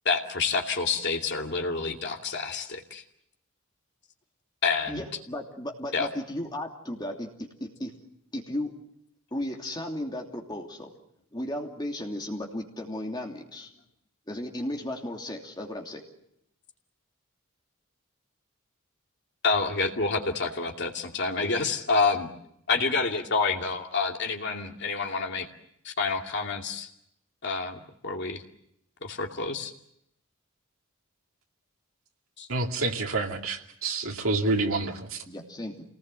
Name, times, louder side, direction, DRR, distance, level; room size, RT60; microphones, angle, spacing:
voice 1, 0.0-3.0 4.6-5.0 5.9-6.1 19.4-22.3 22.7-25.5 25.8-26.9 27.4-28.4 29.0-29.7 32.4-32.5, left 4 dB, 55° left, 2 dB, 2.6 m, -28 dB
voice 2, 4.9-7.9 8.3-8.7 9.3-10.9 11.3-13.7 14.3-16.0 35.3-35.8, left 1 dB, 20° left, 1 dB, 2.9 m, -35 dB
voice 3, 32.5-35.2, right 3 dB, 80° right, 1 dB, 2.6 m, -28 dB
28.0 x 19.5 x 7.8 m, 0.76 s
head